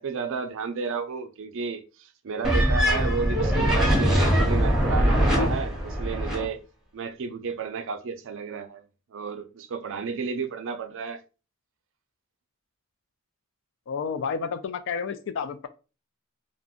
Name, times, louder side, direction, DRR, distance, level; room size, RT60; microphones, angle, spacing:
voice 1, 0.0-6.6 6.9-11.2, right 5 dB, 65° right, 0.4 m, -32 dB
sound 1, 2.4-6.5, equal, ahead, 0.8 m, -22 dB
voice 2, 13.9-15.7, left 6 dB, 60° left, 0.4 m, -30 dB
2.5 x 2.1 x 3.6 m
head